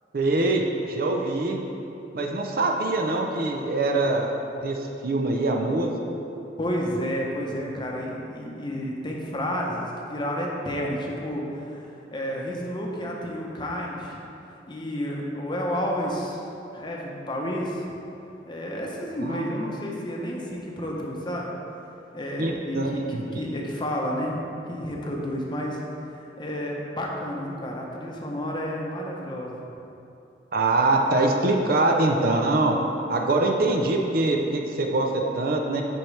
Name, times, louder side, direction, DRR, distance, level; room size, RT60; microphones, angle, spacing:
voice 1, 0.1-1.6 2.1-4.3 4.6-5.9 19.2-19.8 22.4-23.4 30.5-32.8 33.1-35.8, right 2 dB, 55° right, 2 dB, 0.6 m, -24 dB
voice 2, 6.6-14.3 14.7-16.4 16.7-17.9 18.4-21.5 22.1-24.4 24.7-29.6, equal, 25° left, -2 dB, 0.8 m, -31 dB
9.9 x 4.5 x 3.3 m, 2.8 s
head